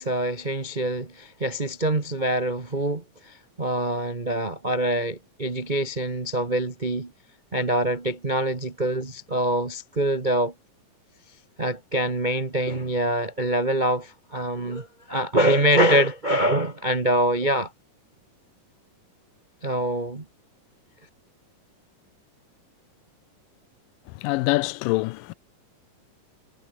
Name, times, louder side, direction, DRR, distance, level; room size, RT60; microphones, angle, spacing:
voice 1, 0.0-7.1 7.5-10.5 11.6-17.7 19.6-20.2, right 1 dB, 45° right, 0.5 m, -25 dB
voice 2, 24.1-25.3, left 21 dB, 85° left, 2.2 m, -25 dB
omnidirectional pair, 3.8 m